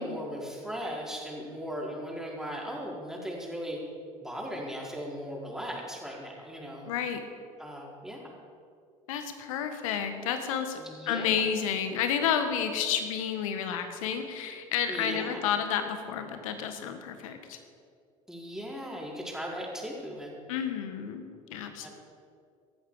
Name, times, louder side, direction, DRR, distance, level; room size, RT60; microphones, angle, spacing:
voice 1, 0.0-3.8 4.2-6.9 7.6-8.2 10.8-11.3 14.9-15.4 18.3-20.3 21.8-21.9, equal, 5° right, -3 dB, 4.7 m, -37 dB
voice 2, 6.9-7.2 9.1-10.8 11.1-17.6 20.5-21.9, left 8 dB, 70° left, 7 dB, 1.6 m, -31 dB
17.5 x 14.0 x 5.0 m, 2.3 s
figure-of-eight pair, 65°, 18 cm